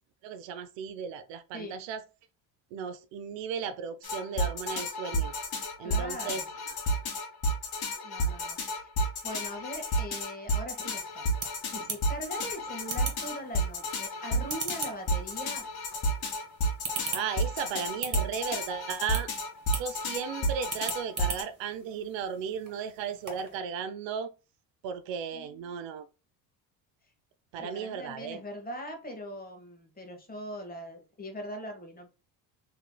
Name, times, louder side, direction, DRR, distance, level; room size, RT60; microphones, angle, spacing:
voice 1, 0.2-2.0 2.7-5.4 5.8-6.8 17.1-19.3 19.7-24.3 24.8-26.1 27.5-28.4, right 7 dB, 65° right, 0.5 m, -35 dB
sound 1, 4.0-21.4, equal, 45° left, 1.4 m, -31 dB
voice 2, 5.8-6.4 8.0-8.9 9.2-11.3 11.7-15.7 25.3-25.7 27.6-32.1, equal, 20° left, 1.1 m, -41 dB
sound 2, 10.8-23.6, right 4 dB, 35° right, 1.5 m, -42 dB
3.0 x 3.0 x 2.2 m
supercardioid pair, 75°, 50 cm